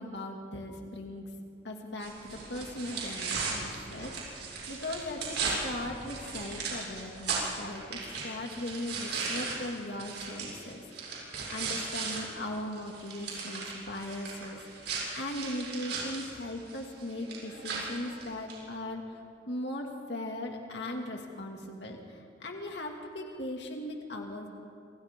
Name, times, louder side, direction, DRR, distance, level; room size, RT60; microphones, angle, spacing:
voice 1, 0.0-1.3 1.6-24.5, left 1 dB, 75° left, 1 dB, 2.3 m, -39 dB
sound 1, 2.0-12.2 12.5-18.6, right 4 dB, 80° right, 7.1 m, -37 dB
28.0 x 28.0 x 3.7 m, 2.4 s
head